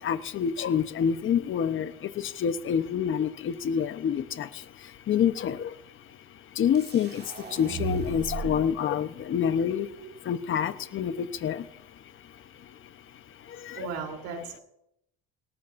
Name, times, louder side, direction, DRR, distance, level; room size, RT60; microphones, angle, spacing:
voice 1, 0.0-5.8 6.1-6.2 6.5-11.8 12.2-12.9 13.3-13.9, left 8 dB, 40° left, 11 dB, 1.0 m, -28 dB
sound 1, 6.7-8.7, right 5 dB, 30° right, 2.0 m, -36 dB
voice 2, 13.7-14.6, right 5 dB, 75° right, 3 dB, 3.6 m, -36 dB
18.5 x 13.0 x 2.6 m, 0.80 s
cardioid pair, 110°, 30 cm